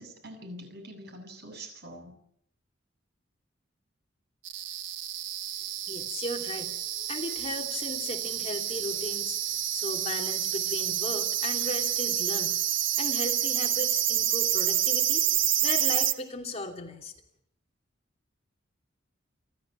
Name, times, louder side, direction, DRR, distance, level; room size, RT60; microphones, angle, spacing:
voice 1, 0.0-2.2, right 1 dB, 60° right, 5 dB, 7.5 m, -44 dB
sound 1, 4.4-16.1, right 11 dB, 85° right, 1.3 m, -28 dB
voice 2, 5.9-12.6 13.0-17.1, left 2 dB, 35° left, 3 dB, 2.9 m, -36 dB
29.5 x 13.0 x 9.0 m, 0.70 s
head